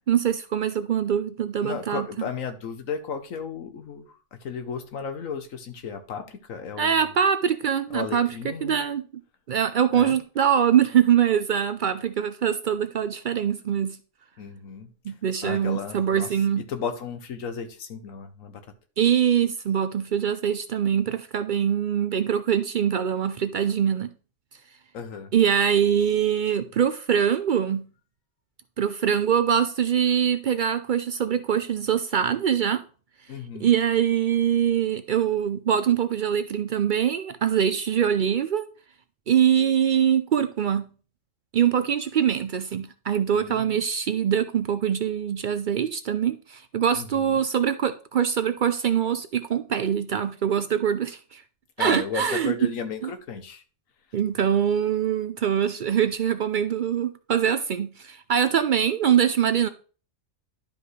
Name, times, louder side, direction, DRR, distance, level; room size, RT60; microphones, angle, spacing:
voice 1, 0.1-2.1 6.8-8.3 8.6-9.0 9.5-14.0 15.1-16.6 19.0-24.1 25.3-27.8 28.8-32.8 33.6-38.7 39.3-40.9 41.5-51.4 51.8-52.7 53.0-53.1 54.1-59.7, right 8 dB, 65° right, 0.5 m, -23 dB
voice 2, 1.6-7.1 7.9-8.8 9.9-10.2 14.4-14.9 15.4-16.3 16.7-18.6 24.9-25.3 33.3-33.7 43.3-43.9 46.9-47.4 51.8-53.6, left 6 dB, 80° left, 1.3 m, -34 dB
11.5 x 5.2 x 3.2 m
omnidirectional pair, 1.4 m